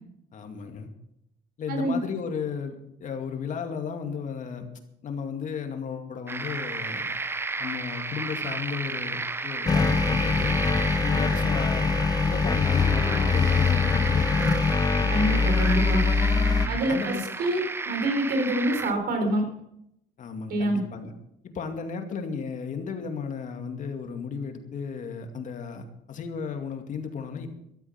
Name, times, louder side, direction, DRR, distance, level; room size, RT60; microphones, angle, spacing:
voice 1, 0.3-0.9 1.6-4.7 5.0-7.1 7.6-10.5 11.0-11.9 12.2-14.6 16.5-17.2 20.2-21.1 21.4-27.5, left 6 dB, 50° left, 5 dB, 2.4 m, -34 dB
voice 2, 1.7-2.0 15.1-16.1 16.7-17.1 17.4-19.5 20.5-20.8, right 1 dB, 65° right, 5 dB, 4.5 m, -26 dB
sound 1, 6.3-18.9, right 3 dB, 15° right, 0.6 m, -32 dB
sound 2, 9.7-16.7, left 4 dB, 20° left, 0.8 m, -23 dB
13.5 x 13.0 x 5.9 m, 0.77 s
cardioid pair, 110°, 17 cm